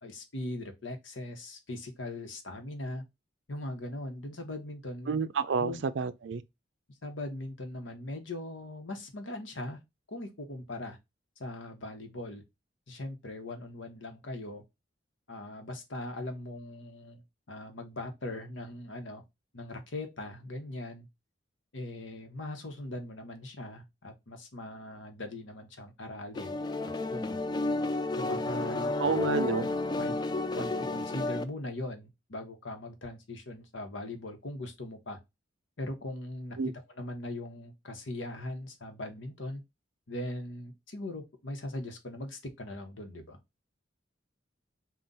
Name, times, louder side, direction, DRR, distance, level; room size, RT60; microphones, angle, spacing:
voice 1, 0.0-3.0 3.5-5.2 5.6-5.8 7.0-9.8 10.1-11.0 11.4-12.4 12.9-14.6 15.3-17.2 17.5-19.2 19.5-21.1 21.7-26.6 27.1-27.4 28.2-29.6 30.0-30.1 30.5-35.2 35.8-36.6 36.9-39.6 40.1-43.4, left 1 dB, 90° left, 1.0 m, -40 dB
voice 2, 5.1-6.4 29.0-29.7 36.6-36.7, right 5 dB, 70° right, 0.4 m, -29 dB
sound 1, 26.3-31.4, left 2 dB, 25° left, 0.3 m, -31 dB
3.8 x 2.4 x 4.0 m
head